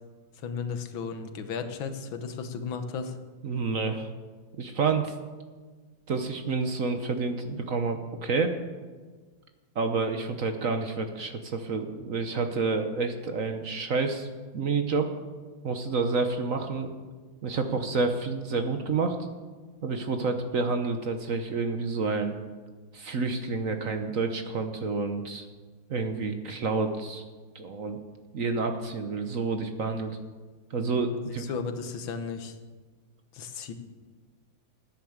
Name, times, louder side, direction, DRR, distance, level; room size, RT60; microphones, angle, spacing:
voice 1, 0.4-3.2 31.1-32.6 33.3-33.7, left 5 dB, 85° left, 8 dB, 1.9 m, -35 dB
voice 2, 3.4-4.1 4.6-5.1 6.1-8.5 9.7-15.1 15.6-16.9 17.4-19.2 19.8-22.3 22.9-25.4 25.9-27.2 27.5-28.0 28.3-30.2 30.7-31.4, right 4 dB, 50° right, 6 dB, 1.2 m, -29 dB
15.0 x 10.0 x 7.2 m, 1.4 s
omnidirectional pair, 2.1 m